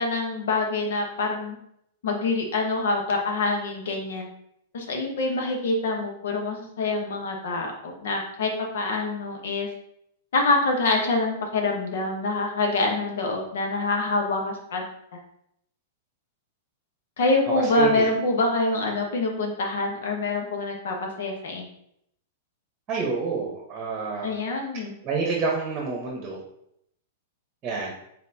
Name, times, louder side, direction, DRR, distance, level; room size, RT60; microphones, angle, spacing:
voice 1, 0.0-1.6 2.0-4.3 4.7-9.7 10.3-14.9 15.1-15.2 17.2-21.7 24.2-24.9, left 2 dB, 80° left, 2 dB, 1.0 m, -25 dB
voice 2, 17.5-18.1 22.9-24.4 25.0-26.4 27.6-27.9, right 4 dB, 25° right, -1 dB, 1.0 m, -28 dB
4.2 x 4.0 x 2.7 m, 0.73 s
hypercardioid pair, 145°, 0 cm